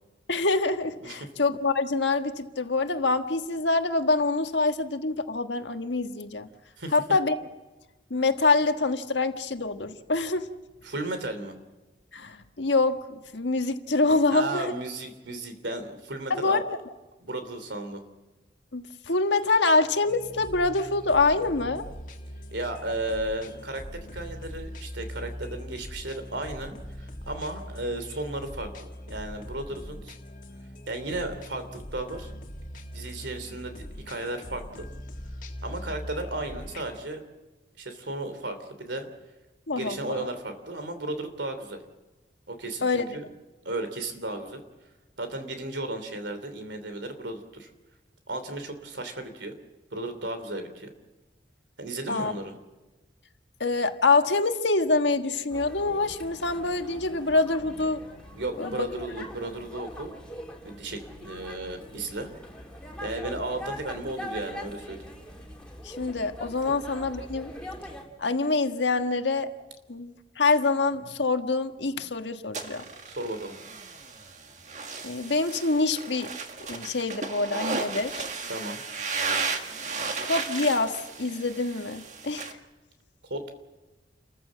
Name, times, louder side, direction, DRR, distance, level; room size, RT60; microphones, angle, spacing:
voice 1, 0.3-6.5 6.9-7.3 8.1-10.5 12.1-14.7 16.3-16.8 18.7-21.8 39.7-40.3 42.8-43.1 52.1-52.3 53.6-58.0 58.6-58.9 65.8-67.5 68.2-69.5 69.9-72.8 75.0-76.3 76.7-78.3 80.2-82.5, left 3 dB, 85° left, 7 dB, 1.5 m, -25 dB
voice 2, 10.8-11.6 14.3-16.6 17.2-18.0 22.5-30.1 30.9-32.3 32.9-34.9 35.6-37.2 37.8-39.1 39.7-41.8 42.5-43.3 43.6-44.6 45.2-47.7 48.3-49.5 49.9-50.9 51.8-52.5 58.3-60.2 60.6-62.3 63.0-65.0 66.7-66.8 73.1-73.6 78.5-78.8 83.3-83.5, right 2 dB, 80° right, 8 dB, 3.0 m, -34 dB
sound 1, 20.0-37.0, equal, 45° left, 2.1 m, -41 dB
sound 2, 55.5-68.0, equal, 5° left, 3.1 m, -42 dB
sound 3, 72.5-82.5, right 4 dB, 40° right, 1.7 m, -34 dB
29.5 x 14.5 x 7.5 m, 1.2 s
head